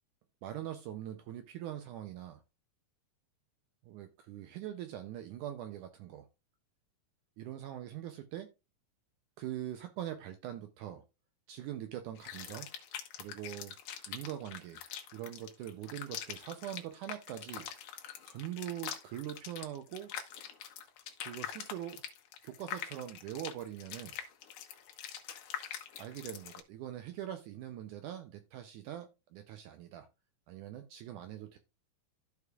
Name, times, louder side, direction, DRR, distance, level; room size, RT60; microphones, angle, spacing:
voice 1, 0.4-2.4 3.9-6.3 7.4-8.5 9.4-11.0 11.5-12.7 13.2-13.8 14.1-14.8 15.1-17.7 18.3-20.1 21.2-22.0 22.4-24.1 26.0-30.1 30.5-31.6, right 12 dB, 80° right, 1.9 m, -42 dB
sound 1, 12.2-26.6, left 10 dB, 75° left, 2.4 m, -44 dB
14.0 x 5.0 x 2.3 m
omnidirectional pair, 4.0 m